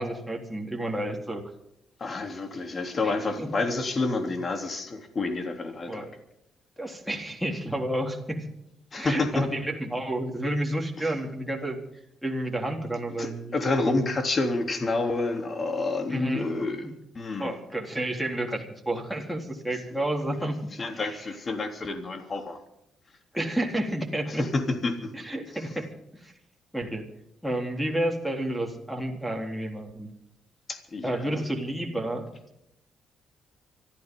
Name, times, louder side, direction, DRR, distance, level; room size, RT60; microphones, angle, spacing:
voice 1, 0.0-1.4 3.0-3.5 5.9-6.1 6.8-8.4 9.0-11.8 12.2-14.1 16.1-16.5 17.4-20.6 20.9-21.2 23.3-24.4 25.1-25.9 26.2-26.3 26.7-27.1 27.4-30.1 31.0-32.3, right 1 dB, ahead, 0 dB, 3.8 m, -30 dB
voice 2, 2.0-6.1 8.9-9.4 11.0-11.1 13.2-17.5 20.8-22.6 24.3-25.1 30.7-31.4, left 3 dB, 35° left, 5 dB, 3.4 m, -29 dB
25.5 x 13.5 x 3.9 m, 0.81 s
cardioid pair, 90°, 0 cm